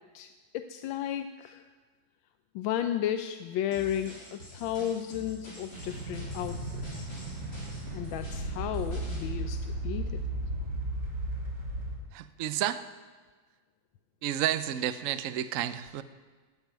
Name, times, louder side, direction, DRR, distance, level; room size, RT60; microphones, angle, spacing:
voice 1, 0.1-1.6 2.5-7.1 7.9-10.1, left 10 dB, 85° left, 8 dB, 1.4 m, -34 dB
sound 1, 3.7-9.3, left 1 dB, 45° left, 4.5 m, -47 dB
sound 2, 5.7-12.0, right 1 dB, 55° right, 3.0 m, -35 dB
voice 2, 12.1-12.8 14.2-16.0, right 11 dB, 75° right, 12 dB, 0.7 m, -31 dB
12.0 x 8.2 x 9.1 m, 1.4 s
omnidirectional pair, 2.1 m